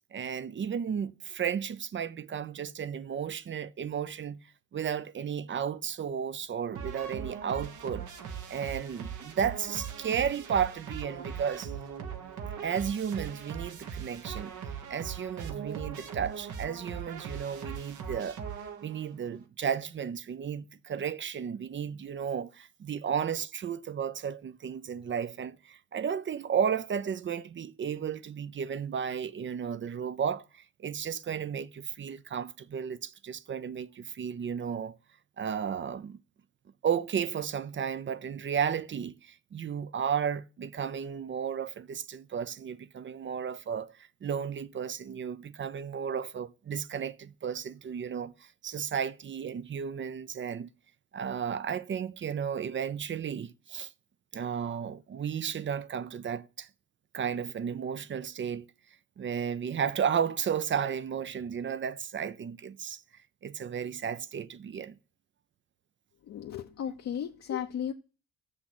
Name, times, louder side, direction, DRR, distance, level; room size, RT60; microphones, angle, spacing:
voice 1, 0.1-4.4 4.7-8.0 8.5-11.7 12.6-14.5 14.9-18.4 18.8-35.0 35.4-36.2 36.8-50.7 51.1-53.9 54.3-56.7 57.1-58.7 59.2-63.0 63.4-65.0, right 7 dB, 40° right, 0.6 m, -33 dB
sound 1, 6.7-19.1, right 7 dB, 75° right, 1.7 m, -40 dB
voice 2, 66.3-67.9, left 9 dB, 60° left, 0.8 m, -35 dB
7.2 x 6.5 x 7.9 m
cardioid pair, 90°, 30 cm